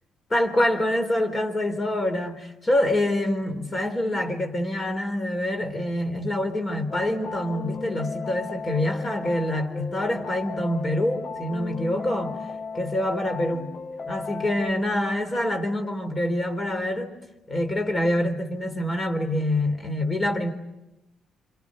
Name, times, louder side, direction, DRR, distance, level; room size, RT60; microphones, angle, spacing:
voice 1, 0.3-12.4 12.7-13.7 14.1-17.2 17.5-20.5, left 1 dB, 30° left, 4.0 m, -26 dB
sound 1, 6.9-14.7, left 5 dB, 45° left, 1.0 m, -36 dB
27.5 x 27.0 x 6.5 m
cardioid pair, 90°, 0 cm